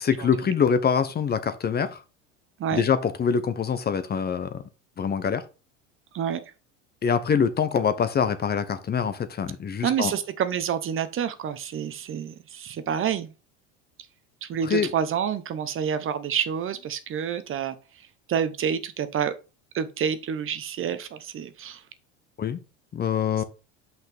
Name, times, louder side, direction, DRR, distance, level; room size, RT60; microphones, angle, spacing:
voice 1, 0.0-2.0 2.7-4.6 5.0-5.4 7.0-10.1 14.6-14.9 22.4-22.6 22.9-23.4, left 7 dB, 25° left, 0.8 m, -24 dB
voice 2, 9.8-13.3 14.4-17.8 18.3-19.3 19.7-21.8, right 8 dB, 35° right, 0.9 m, -28 dB
5.8 x 5.7 x 3.4 m
supercardioid pair, 95°, 37 cm